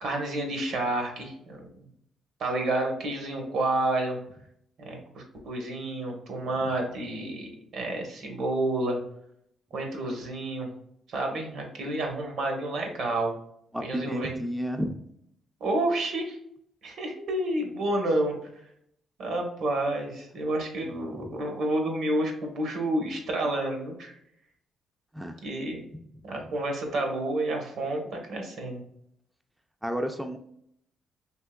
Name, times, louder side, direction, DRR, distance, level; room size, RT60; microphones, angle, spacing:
voice 1, 0.0-1.7 2.4-4.2 4.8-9.0 9.7-10.7 11.1-13.3 13.8-14.3 15.6-16.4 16.8-18.3 19.2-24.1 25.4-25.8 26.2-28.8, right 1 dB, 75° right, 2 dB, 1.0 m, -29 dB
voice 2, 13.7-15.0 21.2-21.3 25.1-25.4 29.8-30.4, equal, 5° right, 5 dB, 0.3 m, -31 dB
3.5 x 2.9 x 2.2 m, 0.72 s
cardioid pair, 90°, 0 cm